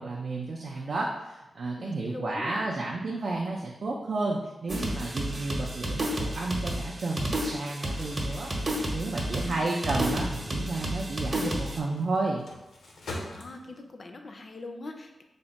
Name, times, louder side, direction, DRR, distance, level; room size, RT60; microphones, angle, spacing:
voice 1, 0.0-8.5 8.9-12.5, right 2 dB, 55° right, -2 dB, 0.4 m, -32 dB
voice 2, 1.8-2.7 9.2-9.8 13.3-15.2, left 2 dB, 40° left, 5 dB, 0.4 m, -42 dB
sound 1, 4.7-11.8, equal, 30° right, 0.7 m, -31 dB
Crumpling crinkling, 7.8-13.9, left 1 dB, 85° left, 0.6 m, -45 dB
3.4 x 2.1 x 4.0 m, 0.98 s
wide cardioid pair, 130°, 0 cm